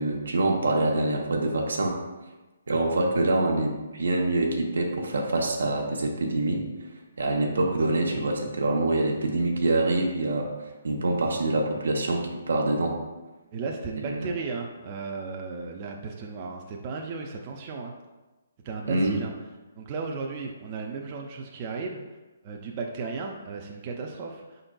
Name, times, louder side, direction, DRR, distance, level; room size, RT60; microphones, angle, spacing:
voice 1, 0.0-2.0 2.7-6.6 7.2-10.5 10.8-13.0 14.0-14.3 18.9-19.2, right 2 dB, 85° right, 2 dB, 0.7 m, -25 dB
voice 2, 13.5-17.9 18.6-19.3 19.7-22.0 22.4-24.6, right 4 dB, 35° right, 1 dB, 0.4 m, -35 dB
5.0 x 3.9 x 2.2 m, 1.1 s
hypercardioid pair, 155°, 0 cm